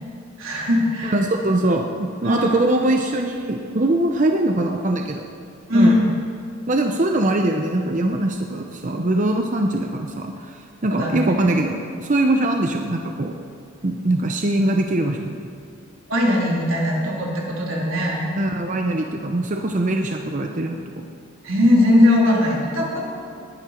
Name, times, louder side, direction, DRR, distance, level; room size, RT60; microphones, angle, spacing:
voice 1, 0.4-1.2 2.2-2.6 5.7-6.1 10.8-11.3 16.1-18.2 21.4-23.1, left 1 dB, 85° right, -3 dB, 3.4 m, -19 dB
voice 2, 1.0-5.2 5.7-6.1 6.7-13.4 13.8-15.5 18.4-20.8, right 1 dB, 40° right, 3 dB, 0.7 m, -22 dB
20.0 x 10.0 x 4.4 m, 2.6 s
head